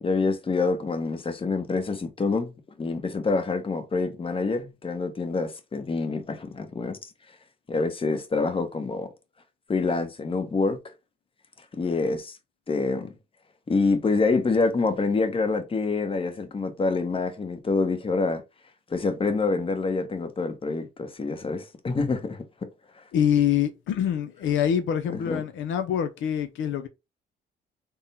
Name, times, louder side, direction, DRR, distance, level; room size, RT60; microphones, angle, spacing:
voice 1, 0.0-2.5 2.8-7.1 7.7-9.1 9.7-10.8 11.7-12.4 12.7-13.1 13.7-18.4 18.9-22.4 25.1-25.4, left 3 dB, 25° left, 0.9 m, -26 dB
voice 2, 23.1-26.9, left 9 dB, 75° left, 0.5 m, -25 dB
3.6 x 2.1 x 4.1 m
cardioid pair, 90°, 20 cm